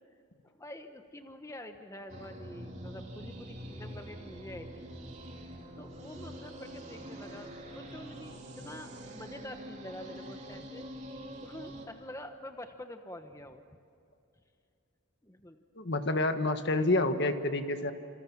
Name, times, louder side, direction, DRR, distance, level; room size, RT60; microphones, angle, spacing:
voice 1, 0.4-4.9 5.8-10.9 11.4-13.6 15.2-15.6, left 1 dB, 15° left, 6 dB, 1.1 m, -46 dB
sound 1, 2.1-11.9, right 1 dB, 35° right, 3.3 m, -45 dB
voice 2, 15.8-17.9, left 2 dB, 55° left, 8 dB, 1.5 m, -28 dB
28.0 x 27.5 x 7.3 m, 2.6 s
head